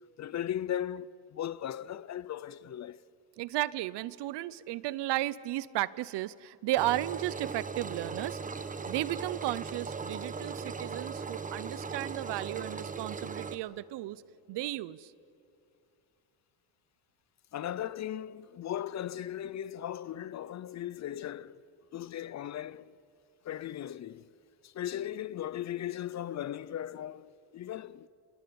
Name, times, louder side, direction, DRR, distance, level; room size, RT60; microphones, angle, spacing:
voice 1, 0.2-3.0 17.5-21.6 21.9-22.9 23.4-24.3 24.6-28.1, left 11 dB, 40° left, 0.6 m, -37 dB
voice 2, 3.4-8.4 8.9-14.2 14.5-15.1, right 16 dB, 70° right, 0.8 m, -34 dB
Engine, 6.8-13.6, right 5 dB, 20° right, 1.0 m, -38 dB
29.0 x 23.5 x 7.0 m
cardioid pair, 120°, 43 cm